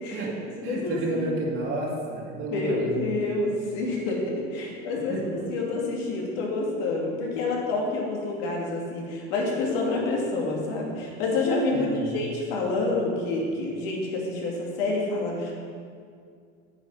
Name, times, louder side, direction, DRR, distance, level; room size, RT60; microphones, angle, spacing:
voice 1, 0.1-3.0 5.1-5.4 11.7-12.2, right 2 dB, 45° right, -4 dB, 2.1 m, -31 dB
voice 2, 0.6-1.3 2.5-15.5, left 2 dB, 80° left, -2 dB, 2.5 m, -28 dB
8.7 x 7.6 x 5.5 m, 2.3 s
supercardioid pair, 125°, 29 cm